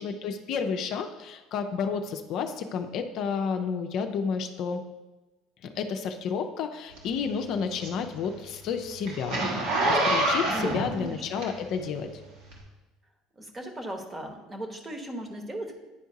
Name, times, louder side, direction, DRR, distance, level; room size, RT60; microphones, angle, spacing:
voice 1, 0.0-4.8 5.6-9.4 9.8-12.1, left 6 dB, 60° left, 6 dB, 0.5 m, -31 dB
Zipper (clothing), 7.0-11.9 12.5-12.6, right 1 dB, 70° right, 1.5 m, -27 dB
voice 2, 10.5-11.5 13.4-15.8, right 1 dB, 20° right, 4 dB, 1.1 m, -37 dB
9.6 x 4.5 x 2.7 m, 1.1 s
hypercardioid pair, 75°, 0 cm